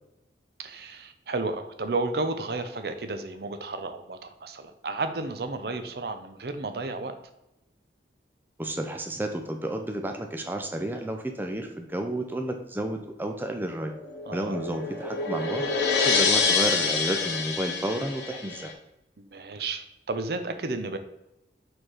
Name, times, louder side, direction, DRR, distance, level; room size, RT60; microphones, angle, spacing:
voice 1, 0.6-7.1 14.3-14.7 19.2-21.0, right 3 dB, 60° right, 8 dB, 0.6 m, -32 dB
voice 2, 8.6-13.9 14.3-15.7 16.0-18.7, right 1 dB, 10° right, 4 dB, 0.5 m, -31 dB
sound 1, 13.9-18.7, left 4 dB, 75° left, 1.2 m, -26 dB
4.5 x 4.4 x 4.8 m, 0.90 s
head